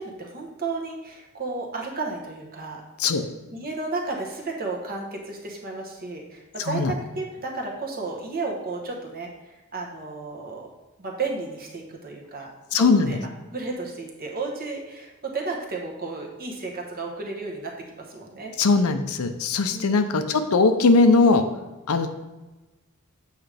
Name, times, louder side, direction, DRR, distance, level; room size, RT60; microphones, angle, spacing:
voice 1, 0.0-2.8 3.5-10.7 11.0-12.5 12.8-13.2 13.4-18.5 19.7-20.1, right 3 dB, 45° right, 0 dB, 1.1 m, -33 dB
voice 2, 12.7-13.2 18.6-21.4 21.9-22.1, left 3 dB, 80° left, 8 dB, 0.6 m, -20 dB
8.0 x 5.0 x 3.4 m, 1.1 s
head